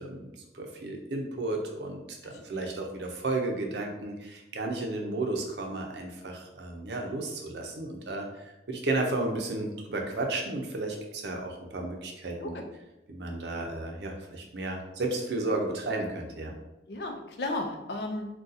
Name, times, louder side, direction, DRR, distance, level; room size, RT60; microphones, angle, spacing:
voice 1, 0.0-12.5 13.1-16.5, right 2 dB, 75° right, 2 dB, 0.5 m, -33 dB
voice 2, 2.2-2.7 12.4-12.7 16.9-18.3, left 2 dB, 65° left, 3 dB, 0.5 m, -35 dB
2.6 x 2.3 x 3.9 m, 0.97 s
head